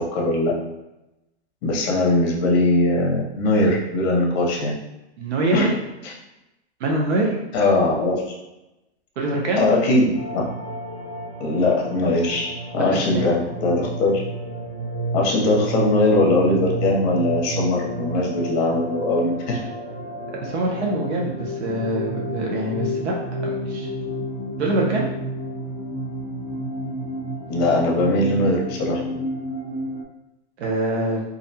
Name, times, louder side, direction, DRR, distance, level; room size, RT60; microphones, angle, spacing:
voice 1, 0.1-0.5 1.6-4.8 5.5-5.7 7.5-8.3 9.6-10.4 11.4-14.2 15.1-19.6 27.5-29.0, left 2 dB, 40° left, -1 dB, 0.7 m, -20 dB
voice 2, 5.2-5.7 6.8-7.4 9.2-9.6 12.8-13.3 20.4-23.2 23.4-23.9 24.6-25.0 30.6-31.2, right 2 dB, 85° right, -1 dB, 0.7 m, -24 dB
sound 1, 10.1-30.0, right 1 dB, 20° right, 0.5 m, -30 dB
2.5 x 2.1 x 2.7 m, 0.96 s
hypercardioid pair, 145°, 33 cm